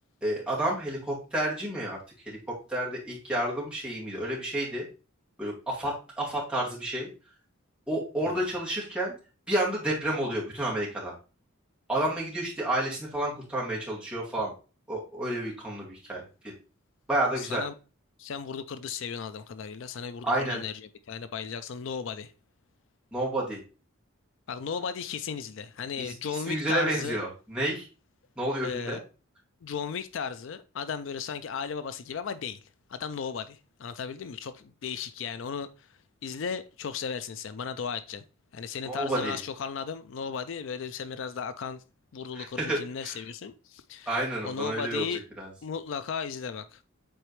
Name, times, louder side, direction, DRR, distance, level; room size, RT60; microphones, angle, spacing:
voice 1, 0.2-2.0 2.2-2.4 2.7-4.9 5.4-7.1 7.9-9.1 9.5-11.1 11.9-14.5 14.9-16.5 17.1-17.6 20.2-20.6 23.1-23.6 26.0-27.9 28.4-29.0 38.8-39.4 42.3-43.2 44.1-45.5, right 1 dB, 5° right, 2.3 m, -30 dB
voice 2, 17.4-17.7 18.2-22.3 24.5-27.2 28.6-29.0 29.6-32.6 32.9-35.9 36.2-38.2 38.5-41.8 42.1-45.2 45.6-46.8, left 6 dB, 65° left, 0.4 m, -35 dB
7.9 x 4.2 x 3.2 m
head